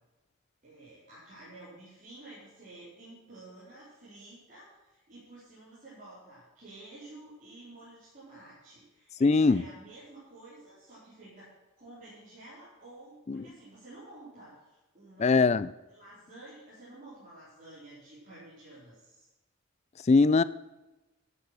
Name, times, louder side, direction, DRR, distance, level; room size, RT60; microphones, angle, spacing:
voice 1, 0.6-11.5 11.8-15.4 15.9-19.3, right 2 dB, 35° right, -10 dB, 4.3 m, -51 dB
voice 2, 9.2-9.6 13.3-13.4 15.2-15.7 20.0-20.4, left 4 dB, 30° left, 17 dB, 0.3 m, -21 dB
12.0 x 8.3 x 6.2 m, 1.1 s
head